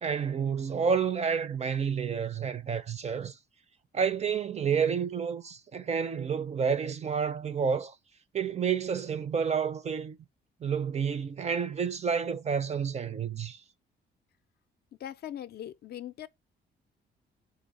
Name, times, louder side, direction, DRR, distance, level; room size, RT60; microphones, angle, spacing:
voice 1, 0.0-3.4 3.9-7.9 8.3-10.2 10.6-13.6, right 6 dB, 35° right, 0.5 m, -29 dB
voice 2, 15.0-16.3, left 11 dB, 55° left, 0.4 m, -40 dB
3.9 x 3.0 x 4.1 m
cardioid pair, 90°, 20 cm